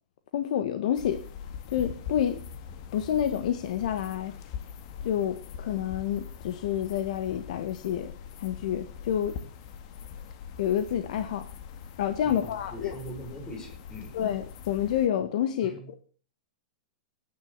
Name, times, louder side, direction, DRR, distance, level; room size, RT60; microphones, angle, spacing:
voice 1, 0.3-1.2 1.7-2.4 2.9-4.3 5.0-8.1 8.4-9.3 10.6-11.5 12.0-12.9 14.1-16.0, left 10 dB, 65° left, 9 dB, 1.6 m, -28 dB
sound 1, 0.9-15.1, left 7 dB, 45° left, 1.9 m, -43 dB
voice 2, 12.2-14.2 15.6-15.8, equal, 15° left, 2 dB, 5.7 m, -42 dB
17.5 x 10.5 x 7.4 m, 0.41 s
hypercardioid pair, 155°, 4 cm